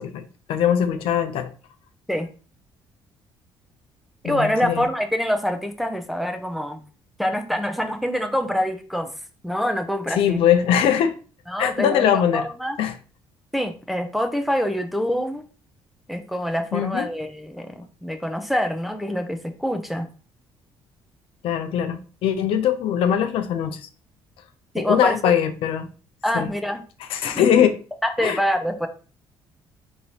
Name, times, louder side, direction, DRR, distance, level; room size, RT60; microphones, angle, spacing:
voice 1, 0.0-1.5 4.2-4.8 10.1-11.1 11.6-12.4 12.8-12.9 16.7-17.1 21.4-23.9 24.8-25.9 26.3-26.5 27.1-27.8 28.2-28.4, left 9 dB, 75° left, 0.5 m, -21 dB
voice 2, 4.2-6.8 7.2-9.1 9.4-10.4 11.5-12.8 13.5-15.4 16.1-20.1 24.7-25.3 26.2-26.8 27.2-27.7 28.0-28.9, equal, ahead, 0.5 m, -25 dB
3.9 x 3.0 x 2.8 m
cardioid pair, 105°, 9 cm